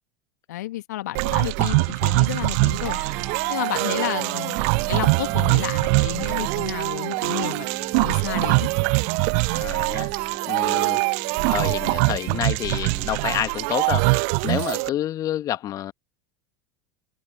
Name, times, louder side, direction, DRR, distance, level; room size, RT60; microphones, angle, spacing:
voice 1, 0.5-3.0 3.5-4.6 4.9-7.7 8.0-8.7, left 15 dB, 60° left, 1.7 m, -31 dB
sound 1, 1.1-14.9, right 38 dB, 50° right, 0.4 m, -23 dB
Guitar, 2.8-12.7, right 2 dB, 10° right, 7.2 m, -43 dB
voice 2, 9.5-10.1 10.5-11.0 11.5-15.9, left 12 dB, 35° left, 1.8 m, -29 dB
figure-of-eight pair, 80°, 10 cm